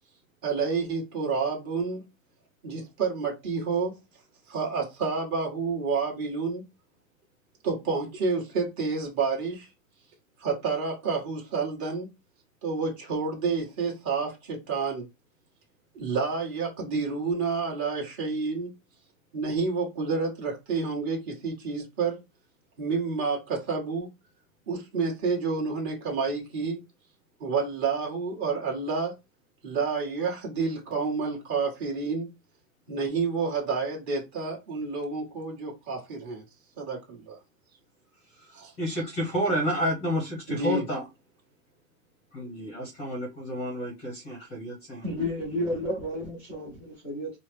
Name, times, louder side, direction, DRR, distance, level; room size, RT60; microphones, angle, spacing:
voice 1, 0.4-2.0 2.6-4.0 4.5-6.6 7.6-9.7 10.4-12.1 12.6-15.1 15.9-18.7 19.3-22.2 22.8-24.1 24.7-26.8 27.4-29.1 29.6-32.3 32.9-36.4 36.8-37.4 38.5-38.7 40.5-40.8, right 4 dB, 25° right, 1.5 m, -29 dB
voice 2, 38.2-41.0 42.3-45.1, right 1 dB, 15° left, 0.8 m, -30 dB
voice 3, 45.0-47.3, left 1 dB, 5° right, 0.4 m, -31 dB
4.8 x 2.0 x 3.3 m
supercardioid pair, 175°, 42 cm